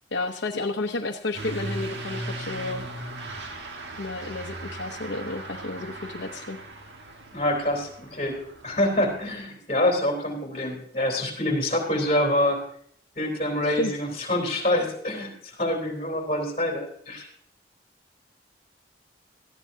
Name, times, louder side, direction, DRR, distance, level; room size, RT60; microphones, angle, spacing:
voice 1, 0.1-2.8 4.0-6.6 13.6-13.9, left 2 dB, 75° left, 2 dB, 0.8 m, -31 dB
Truck / Accelerating revving vroom, 1.3-9.3, right 2 dB, 75° right, 1.5 m, -38 dB
voice 2, 7.3-8.4 8.6-12.6 13.2-17.3, left 1 dB, 35° left, -1 dB, 3.4 m, -26 dB
18.0 x 14.0 x 2.7 m, 0.65 s
head